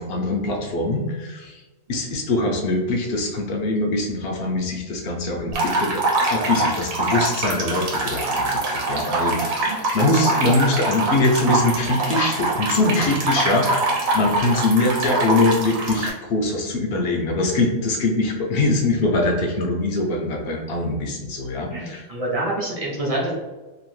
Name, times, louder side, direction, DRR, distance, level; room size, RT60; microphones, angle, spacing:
voice 1, 0.0-1.6 1.9-6.0 6.3-22.0, left 2 dB, 60° left, 1 dB, 0.6 m, -23 dB
sound 1, 5.5-16.1, right 2 dB, 85° right, 1.2 m, -24 dB
voice 2, 21.7-23.3, right 1 dB, 40° right, -5 dB, 0.5 m, -27 dB
2.7 x 2.5 x 3.1 m, 1.2 s
omnidirectional pair, 1.4 m